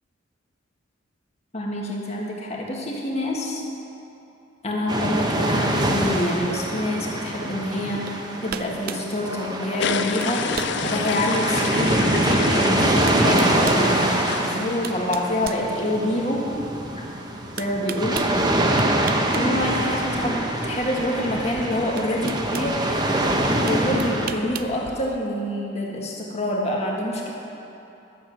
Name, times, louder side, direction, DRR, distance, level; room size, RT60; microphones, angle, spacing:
voice 1, 1.5-3.6 4.6-14.0 14.4-16.5 17.6-18.3 19.0-23.2 23.6-27.3, left 1 dB, 30° left, -2 dB, 1.7 m, -27 dB
sound 1, 4.9-24.3, right 1 dB, 20° right, 0.8 m, -24 dB
sound 2, 8.1-8.2 8.5-9.1 9.8-10.0 10.2-10.8 11.4-11.5 12.6-12.7 13.1-13.9 14.5-16.2 17.6-18.3 18.8-19.5 19.8-19.9 21.3-21.4 22.0-22.7 23.7-24.7, right 7 dB, 45° right, 0.4 m, -35 dB
sound 3, 9.8-15.3 15.7-15.9 16.3-16.4 16.5-16.6 16.9-25.2, left 7 dB, 60° left, 0.4 m, -33 dB
12.0 x 7.3 x 7.6 m, 2.9 s
head